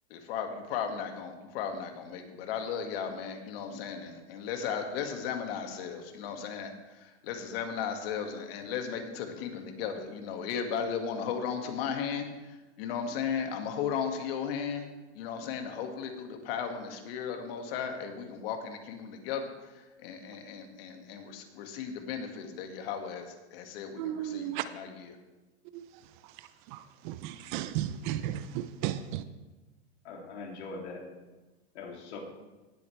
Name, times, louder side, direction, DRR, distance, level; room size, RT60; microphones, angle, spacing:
voice 1, 0.1-14.8 15.1-25.2, left 7 dB, 60° left, 5 dB, 2.0 m, -36 dB
voice 2, 24.0-24.6 25.7-25.9 26.7-29.2, right 12 dB, 45° right, 13 dB, 0.6 m, -34 dB
voice 3, 30.0-31.1 31.7-32.2, left 3 dB, 75° left, 1 dB, 2.9 m, -41 dB
18.5 x 8.2 x 3.3 m, 1.1 s
hypercardioid pair, 125°, 34 cm